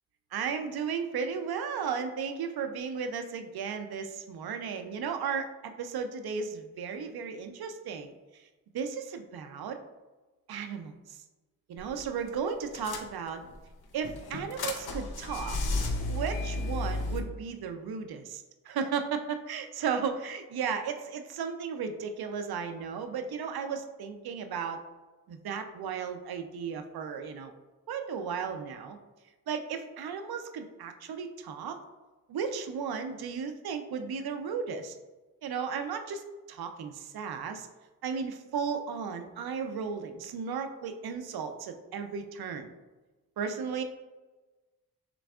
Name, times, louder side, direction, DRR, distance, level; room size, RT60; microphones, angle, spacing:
voice 1, 0.3-8.1 8.7-9.8 10.5-11.2 11.7-13.4 13.9-15.6 16.1-24.8 25.3-27.5 27.9-29.0 29.5-31.8 32.3-34.9 35.4-37.7 38.0-42.7 43.4-43.8, right 6 dB, 75° right, 7 dB, 0.6 m, -35 dB
sound 1, 11.8-12.0 12.3-12.4 12.7-13.5 14.0-17.2, left 2 dB, 75° left, 0.7 m, -33 dB
6.0 x 3.3 x 2.4 m, 1.2 s
cardioid pair, 80°, 37 cm